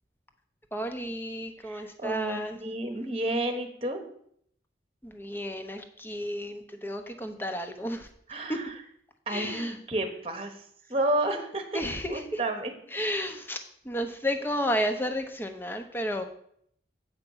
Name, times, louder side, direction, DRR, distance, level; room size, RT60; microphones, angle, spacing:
voice 1, 0.7-2.6 5.0-8.1 8.5-8.6 9.3-9.7 11.7-12.4 12.9-13.6 13.8-16.2, equal, 10° left, 6 dB, 0.8 m, -32 dB
voice 2, 1.6-4.0 8.3-8.7 9.3-10.5 10.9-11.8 12.1-12.7, right 1 dB, 30° right, 7 dB, 1.1 m, -31 dB
8.1 x 5.2 x 7.1 m, 0.67 s
head